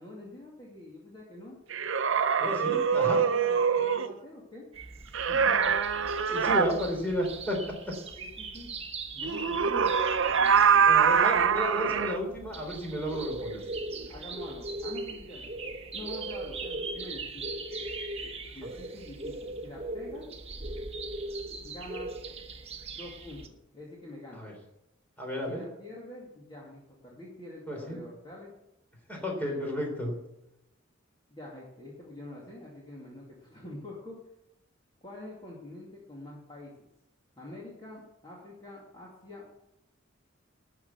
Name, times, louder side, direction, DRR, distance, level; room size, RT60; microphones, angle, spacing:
voice 1, 0.0-1.6 2.7-4.7 5.3-5.8 8.2-8.7 9.1-9.9 10.3-10.9 11.3-12.0 13.2-13.5 14.1-15.6 15.9-17.5 18.5-20.3 21.6-22.1 22.9-24.5 25.5-28.5 29.4-29.6 31.3-34.2 35.0-36.9 37.4-39.5, left 1 dB, 25° left, -4 dB, 2.4 m, -45 dB
sound 1, 1.7-4.1 5.1-6.7 9.2-12.2, right 6 dB, 70° right, 0.6 m, -24 dB
voice 2, 2.4-3.2 6.2-7.6 7.9-8.0 10.9-13.6 24.3-24.5 25.2-25.6 27.7-28.0 29.1-30.2, equal, 10° left, 0 dB, 3.8 m, -32 dB
sound 2, 4.7-23.5, right 2 dB, 30° right, 1.1 m, -39 dB
12.5 x 6.9 x 8.1 m, 0.86 s
head